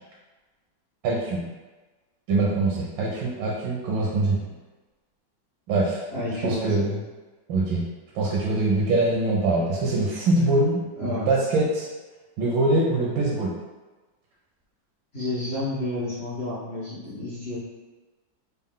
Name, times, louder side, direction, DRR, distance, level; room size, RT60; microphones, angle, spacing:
voice 1, 1.0-1.4 2.3-4.4 5.7-6.0 6.4-6.9 7.5-7.8 8.1-11.9 12.4-13.5, right 2 dB, 85° right, -4 dB, 1.4 m, -23 dB
voice 2, 6.1-7.0 11.0-11.3 15.1-17.6, left 2 dB, 50° left, -9 dB, 0.8 m, -30 dB
4.2 x 2.0 x 3.6 m, 1.2 s
omnidirectional pair, 2.1 m